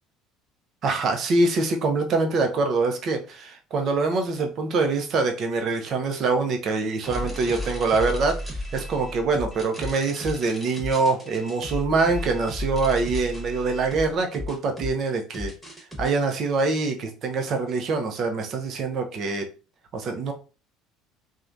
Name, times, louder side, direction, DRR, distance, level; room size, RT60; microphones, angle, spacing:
voice 1, 0.8-8.4 8.7-15.5 16.0-19.5 19.9-20.3, right 3 dB, 50° right, 4 dB, 0.7 m, -24 dB
sound 1, 7.0-16.1, left 1 dB, 5° right, 1.3 m, -34 dB
3.1 x 2.4 x 2.5 m, 0.34 s
hypercardioid pair, 70°, 0 cm